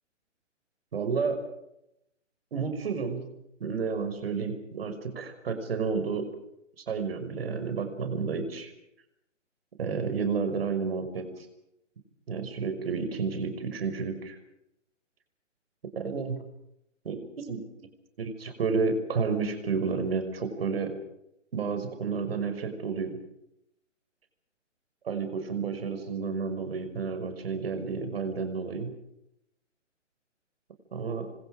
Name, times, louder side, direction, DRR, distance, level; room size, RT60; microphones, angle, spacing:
voice 1, 0.9-1.4 2.5-3.3 3.6-6.3 6.9-8.7 9.8-11.5 12.3-14.4 15.9-16.4 17.0-17.6 18.2-21.0 21.5-23.2 25.0-28.9 30.9-31.3, right 5 dB, 50° right, 7 dB, 5.8 m, -31 dB
30.0 x 25.0 x 5.1 m, 0.82 s
figure-of-eight pair, 130°, 37 cm